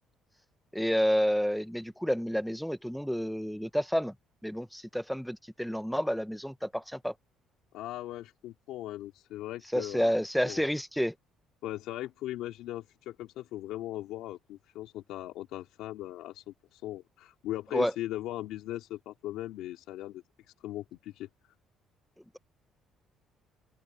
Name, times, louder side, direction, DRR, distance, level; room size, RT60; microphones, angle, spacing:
voice 1, 0.7-4.1 4.4-7.1 9.7-11.1 17.7-17.9, equal, ahead, 0.8 m, -29 dB
voice 2, 7.7-10.1 10.4-10.7 11.6-20.2 20.6-21.3, left 14 dB, 85° left, 2.9 m, -39 dB
open air
cardioid pair, 165°, 0 cm